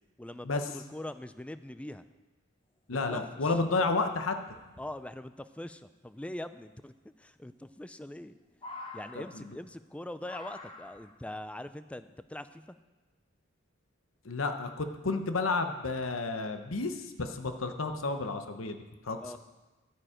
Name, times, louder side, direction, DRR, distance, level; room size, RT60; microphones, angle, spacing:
voice 1, 0.2-2.0 2.9-3.5 4.8-8.4 8.9-12.8 19.2-19.4, left 1 dB, 5° left, 12 dB, 0.4 m, -42 dB
voice 2, 2.9-4.4 9.3-9.4 14.2-19.4, left 3 dB, 90° left, 7 dB, 1.0 m, -31 dB
sound 1, 4.3-4.9 6.4-6.5 7.7-8.2 8.5-9.8 10.2-11.2 12.2-12.3, left 3 dB, 25° left, 1.1 m, -47 dB
11.5 x 8.9 x 5.0 m, 1.2 s
head